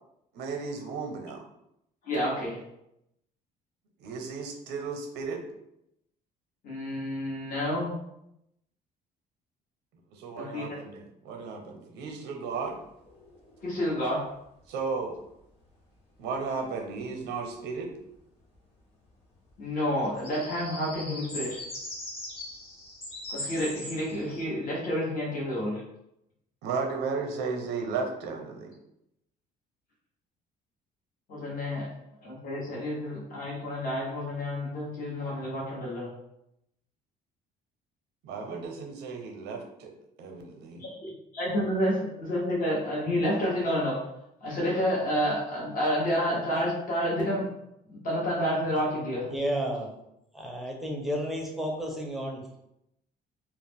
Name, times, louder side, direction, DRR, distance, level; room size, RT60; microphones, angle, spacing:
voice 1, 0.3-1.4 4.0-5.4 10.1-12.8 14.7-15.2 16.2-17.9 26.6-28.7 38.2-39.9 40.2-40.9, right 4 dB, 85° right, 3 dB, 0.6 m, -34 dB
voice 2, 2.0-2.6 6.6-7.9 10.3-10.6 13.6-14.2 19.6-21.6 23.3-25.8 31.3-31.9 32.2-36.1 40.8-44.0 44.4-47.5 47.9-49.3, equal, 55° left, -4 dB, 1.0 m, -29 dB
sound 1, 12.7-13.8 14.0-14.1 19.8-24.4, left 1 dB, 35° left, 1.1 m, -40 dB
voice 3, 49.3-49.9 50.3-52.6, equal, ahead, 0 dB, 0.6 m, -32 dB
2.4 x 2.0 x 3.4 m, 0.80 s
cardioid pair, 110°, 17 cm